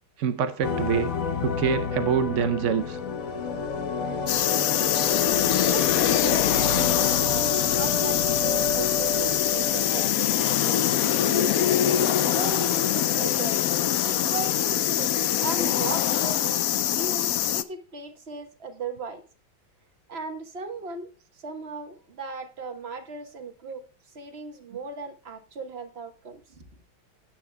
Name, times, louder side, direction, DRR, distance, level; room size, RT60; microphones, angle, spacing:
voice 1, 0.2-1.1 1.4-3.0, right 7 dB, 80° right, 0.6 m, -25 dB
sound 1, 0.6-10.1, left 5 dB, 50° left, 1.1 m, -29 dB
sound 2, 4.3-17.6, left 11 dB, 80° left, 0.7 m, -24 dB
voice 2, 5.7-6.9 7.2-11.8 12.3-13.6 14.0-15.1 15.4-16.6 16.9-19.2 20.1-21.1 21.4-23.8 24.1-26.7, right 3 dB, 35° right, 1.3 m, -37 dB
17.0 x 8.9 x 2.2 m
omnidirectional pair, 2.2 m